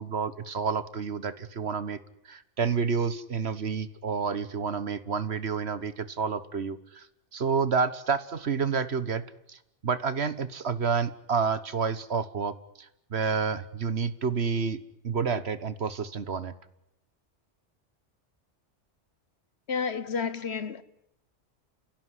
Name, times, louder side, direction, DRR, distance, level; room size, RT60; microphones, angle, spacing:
voice 1, 0.0-2.0 2.3-7.0 7.3-9.2 9.5-9.6 9.8-12.5 13.1-16.5, right 5 dB, 65° right, 1.6 m, -29 dB
voice 2, 19.7-20.8, left 5 dB, 65° left, 1.5 m, -30 dB
29.5 x 16.5 x 9.9 m
omnidirectional pair, 1.2 m